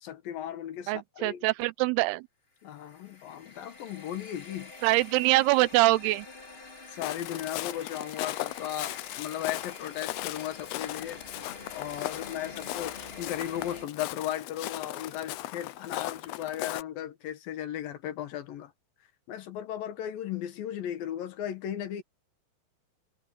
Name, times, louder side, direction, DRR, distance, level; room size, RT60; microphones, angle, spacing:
voice 1, 0.0-1.5 2.6-4.7 6.9-18.7 19.3-22.0, left 11 dB, 70° left, 3.0 m, -36 dB
voice 2, 0.9-2.2 4.8-6.3, right 19 dB, 90° right, 2.7 m, -24 dB
sound 1, 2.6-13.9, left 3 dB, 50° left, 0.7 m, -47 dB
Walk footsteps, 7.0-16.8, left 17 dB, 90° left, 2.6 m, -38 dB
omnidirectional pair, 4.5 m